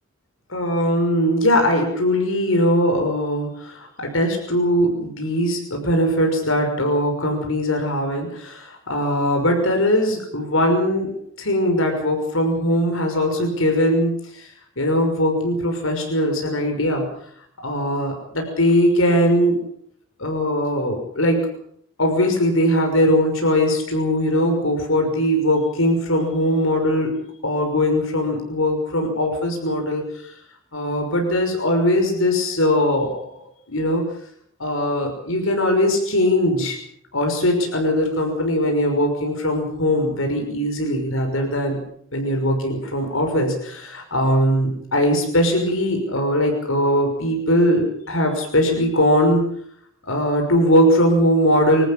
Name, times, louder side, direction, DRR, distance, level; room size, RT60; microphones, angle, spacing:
voice 1, 0.5-11.1 11.4-14.5 14.8-17.0 17.6-19.6 20.2-21.5 22.0-27.1 27.4-30.0 30.7-33.1 33.7-34.1 34.6-36.8 37.1-41.8 42.1-49.4 50.0-51.9, equal, 80° left, 3 dB, 6.0 m, -20 dB
26.5 x 14.0 x 8.7 m, 0.67 s
head